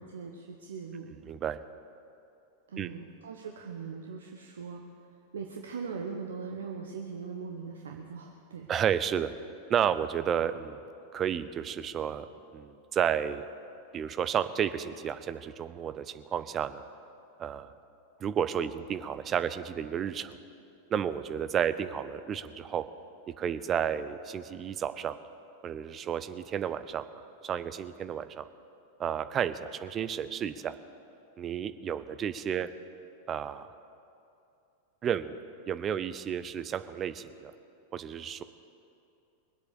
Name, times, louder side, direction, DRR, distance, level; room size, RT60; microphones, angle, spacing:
voice 1, 0.0-1.1 2.7-8.7, right 5 dB, 65° right, 2 dB, 1.0 m, -40 dB
voice 2, 1.3-1.6 2.8-2.9 8.7-9.3 9.7-10.8 11.1-12.3 12.5-13.4 13.9-16.8 17.4-17.7 18.2-20.4 20.9-22.8 23.4-25.1 25.6-27.0 27.4-28.4 29.0-30.7 31.4-32.7 33.3-33.7 35.0-35.4 35.7-37.5 37.9-38.4, right 8 dB, 25° right, 12 dB, 0.6 m, -31 dB
21.0 x 8.0 x 7.0 m, 2.7 s
figure-of-eight pair, 90°, 0 cm